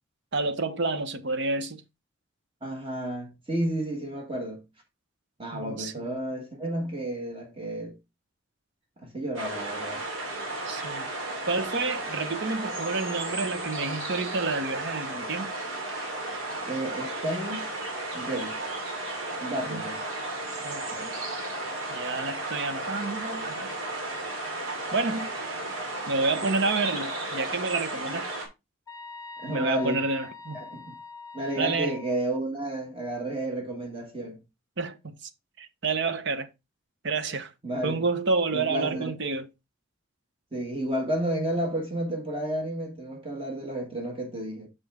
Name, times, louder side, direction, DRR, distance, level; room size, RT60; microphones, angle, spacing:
voice 1, 0.3-1.8 5.5-6.2 10.7-11.1 11.5-15.5 19.6-19.8 20.6-21.2 21.9-23.8 24.9-25.3 26.1-28.3 29.5-30.6 31.6-32.0 34.8-35.3 35.6-36.5 37.0-37.5 37.8-39.5, right 3 dB, 60° right, 0.8 m, -29 dB
voice 2, 2.6-4.6 5.4-7.9 9.0-10.0 16.6-17.7 18.1-18.6 19.4-20.0 29.4-30.0 30.5-30.9 31.3-34.4 37.6-38.0 38.5-39.1 40.5-44.7, right 1 dB, 25° right, 1.3 m, -31 dB
sound 1, 9.3-28.5, right 2 dB, 85° right, 2.7 m, -34 dB
sound 2, 28.9-32.1, left 4 dB, 15° left, 0.6 m, -43 dB
6.7 x 5.4 x 3.5 m
head